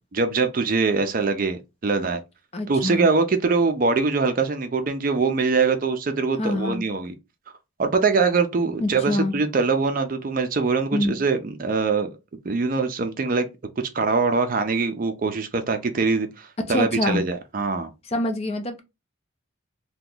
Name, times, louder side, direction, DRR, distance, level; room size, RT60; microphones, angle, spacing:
voice 1, 0.1-2.2 2.7-7.1 7.8-12.1 12.4-13.5 13.8-17.9, right 4 dB, 40° right, 0.4 m, -23 dB
voice 2, 2.5-3.1 6.4-6.8 8.8-9.4 10.9-11.2 16.7-17.2 18.1-18.8, left 1 dB, 30° left, 0.5 m, -25 dB
2.9 x 2.2 x 3.7 m
head